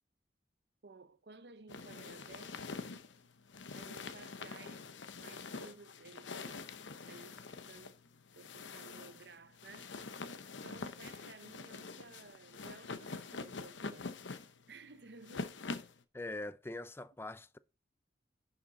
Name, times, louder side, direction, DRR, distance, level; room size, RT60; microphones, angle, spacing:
voice 1, 0.8-2.6 3.7-4.8 5.2-6.8 7.0-8.0 8.4-9.9 10.6-14.1 14.7-15.6, right 4 dB, 60° right, 0.7 m, -56 dB
sound 1, 1.7-16.0, left 4 dB, 85° left, 0.9 m, -45 dB
voice 2, 16.1-17.6, left 2 dB, 15° left, 0.4 m, -43 dB
11.0 x 5.9 x 4.1 m
head